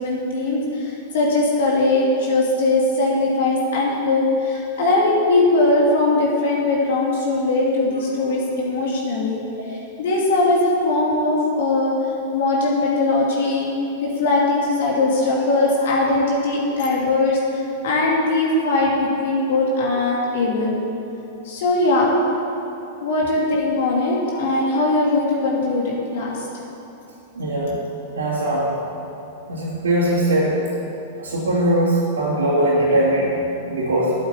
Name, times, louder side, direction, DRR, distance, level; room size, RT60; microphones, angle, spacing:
voice 1, 0.0-9.4 9.7-11.9 12.3-13.7 14.0-20.8 21.4-22.1 23.0-26.4, left 2 dB, 70° left, -3 dB, 2.6 m, -20 dB
voice 2, 27.3-27.7 28.1-28.7 29.5-30.6 31.2-34.1, right 1 dB, 90° right, -11 dB, 3.1 m, -20 dB
8.8 x 8.2 x 8.5 m, 2.9 s
hypercardioid pair, 110°, 0 cm